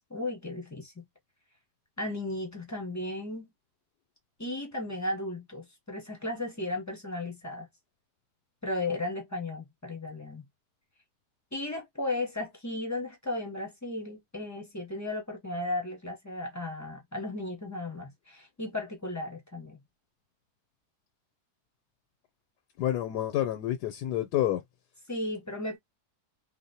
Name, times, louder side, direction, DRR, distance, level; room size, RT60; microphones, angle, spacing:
voice 1, 0.1-1.1 2.0-3.5 4.4-7.7 8.6-10.4 11.5-19.8 25.1-25.8, left 2 dB, 25° left, 0.4 m, -35 dB
voice 2, 22.8-24.6, left 12 dB, 85° left, 1.2 m, -28 dB
2.7 x 2.0 x 2.7 m
omnidirectional pair, 1.7 m